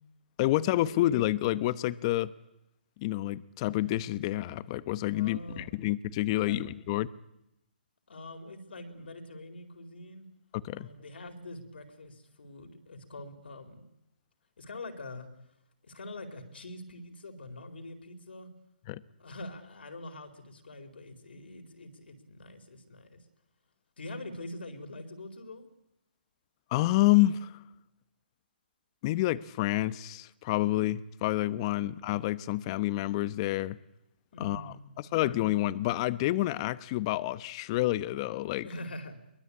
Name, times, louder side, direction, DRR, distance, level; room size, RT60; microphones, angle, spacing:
voice 1, 0.4-2.3 3.0-7.1 10.6-10.9 18.9-19.0 26.7-27.5 29.0-33.8 34.4-38.7, left 16 dB, 30° left, 17 dB, 0.9 m, -28 dB
voice 2, 5.1-5.7 6.4-6.6 8.1-10.3 10.7-13.8 14.6-15.3 15.8-18.5 19.2-23.2 24.0-25.6 34.3-35.2 38.6-39.2, left 1 dB, 80° left, 5 dB, 4.4 m, -44 dB
23.5 x 21.5 x 8.6 m, 0.84 s
hypercardioid pair, 150°, 6 cm